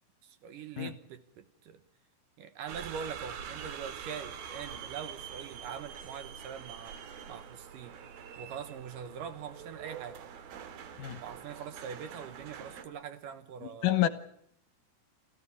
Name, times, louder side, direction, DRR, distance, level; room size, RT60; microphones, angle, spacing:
voice 1, 0.2-1.8 2.4-7.0 7.3-8.0 8.4-10.2 11.2-13.9, right 7 dB, 70° right, 2.6 m, -43 dB
sound 1, 2.7-12.8, right 8 dB, 85° right, 3.4 m, -45 dB
voice 2, 13.6-14.1, left 13 dB, 70° left, 2.5 m, -28 dB
27.5 x 15.0 x 8.6 m
omnidirectional pair, 4.1 m